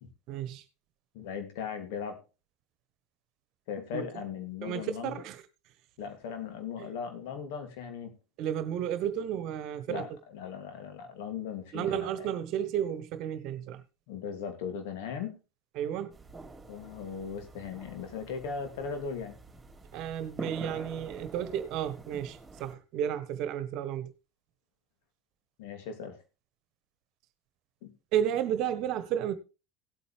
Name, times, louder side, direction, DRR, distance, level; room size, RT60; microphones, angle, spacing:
voice 1, 0.3-0.6 3.9-4.0 4.6-5.4 8.4-10.0 11.7-13.8 15.7-16.1 19.9-24.1 28.1-29.3, right 10 dB, 55° right, 1.2 m, -32 dB
voice 2, 1.1-2.2 3.7-5.2 6.0-8.1 9.9-12.3 14.1-15.4 16.7-19.4 25.6-26.2 27.8-27.9, left 6 dB, 65° left, 2.7 m, -38 dB
sound 1, 16.1-22.7, right 2 dB, 15° right, 3.8 m, -46 dB
17.0 x 8.4 x 3.3 m
hypercardioid pair, 75°, 0 cm